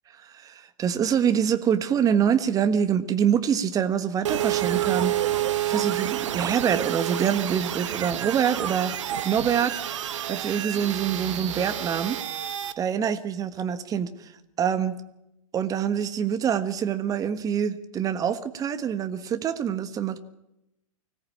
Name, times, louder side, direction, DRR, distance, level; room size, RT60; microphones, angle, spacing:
voice 1, 0.2-8.9 9.2-12.2 12.8-14.3 14.6-15.0 15.5-20.2, right 8 dB, 20° right, 10 dB, 1.4 m, -25 dB
sound 1, 4.2-12.7, right 12 dB, 55° right, 1.5 m, -29 dB
24.5 x 18.0 x 8.7 m, 0.88 s
figure-of-eight pair, 105°, 18 cm